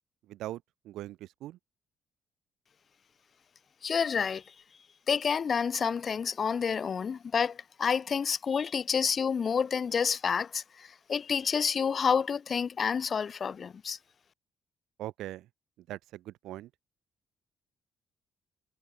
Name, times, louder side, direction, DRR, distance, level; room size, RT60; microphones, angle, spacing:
voice 1, 0.3-1.6 15.0-15.5 15.9-16.7, right 14 dB, 85° right, 6.0 m, -41 dB
voice 2, 3.8-4.4 5.1-14.0, left 6 dB, 45° left, 3.0 m, -29 dB
cardioid pair, 90°, 0 cm